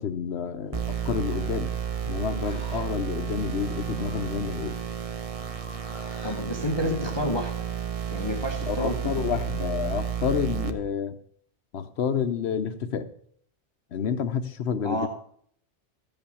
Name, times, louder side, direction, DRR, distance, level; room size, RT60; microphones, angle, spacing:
voice 1, 0.0-1.7 2.0-4.8 6.8-7.1 8.7-11.2 11.7-13.1 13.9-15.1, left 7 dB, 70° left, 11 dB, 1.0 m, -29 dB
sound 1, 0.7-10.7, right 9 dB, 35° right, 0.8 m, -32 dB
Livestock farm animals working animals, 0.8-6.4, right 1 dB, 60° right, 7.1 m, -48 dB
voice 2, 6.2-7.6 8.1-9.3 14.8-15.1, left 1 dB, 25° left, 3 dB, 1.0 m, -30 dB
14.5 x 5.5 x 7.0 m, 0.63 s
omnidirectional pair, 1.2 m